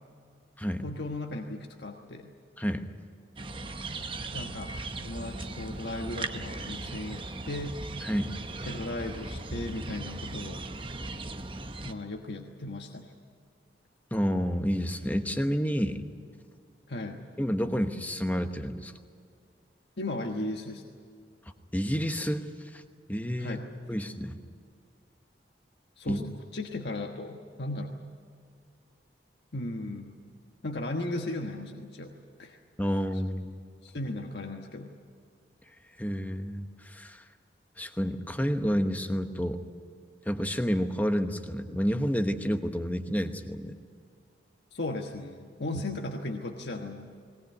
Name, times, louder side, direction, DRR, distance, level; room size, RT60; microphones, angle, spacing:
voice 1, 0.8-2.3 4.3-4.7 5.0-7.8 8.7-10.6 11.8-13.1 16.9-17.2 20.0-20.8 23.4-23.7 26.0-28.0 29.5-30.2 30.6-32.1 32.4-32.6 33.8-35.0 44.7-47.2, left 2 dB, 70° left, 2 dB, 1.3 m, -36 dB
sound 1, 3.4-11.9, right 2 dB, 30° right, 0.9 m, -38 dB
voice 2, 8.0-8.7 14.1-16.0 17.4-18.9 21.7-22.8 23.1-23.6 23.9-24.4 26.0-26.2 32.8-33.6 36.0-37.2 37.8-39.6 40.3-43.8, equal, 10° left, 7 dB, 1.1 m, -29 dB
20.5 x 19.0 x 9.4 m, 2.2 s
head